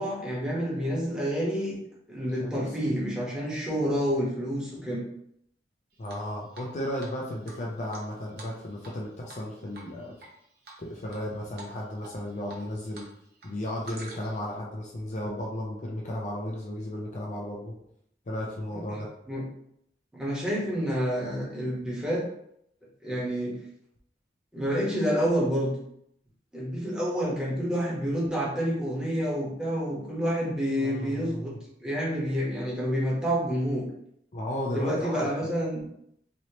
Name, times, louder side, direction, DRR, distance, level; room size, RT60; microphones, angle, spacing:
voice 1, 0.0-1.8 2.1-5.0 18.7-19.0 19.3-19.4 20.1-22.2 23.0-23.5 24.5-25.7 26.5-31.5 31.8-33.9 34.7-35.8, equal, 5° right, -7 dB, 1.1 m, -28 dB
voice 2, 6.0-10.1 10.8-13.1 13.4-17.7 18.3-19.1 30.8-31.6 34.3-35.5, left 1 dB, 45° left, -2 dB, 0.5 m, -34 dB
Drip, 6.0-6.7 7.0-7.1 7.4-9.0 9.3-9.5 9.7-10.3 10.6-11.2 11.6-11.7 12.0-13.1 13.3-14.5, right 2 dB, 60° right, 0.8 m, -46 dB
3.1 x 2.9 x 2.8 m, 0.73 s
head